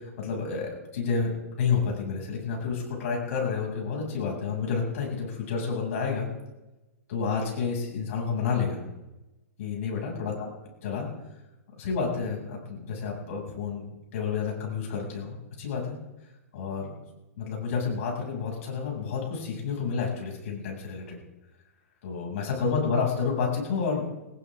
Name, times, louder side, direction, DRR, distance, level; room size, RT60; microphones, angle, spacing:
voice 1, 0.2-6.3 7.1-8.8 9.6-10.5 10.8-11.1 11.8-16.0 16.5-16.9 17.4-21.2 22.0-24.1, left 5 dB, 60° left, -1 dB, 7.4 m, -30 dB
19.0 x 18.0 x 3.8 m, 1.0 s
hypercardioid pair, 115°, 8 cm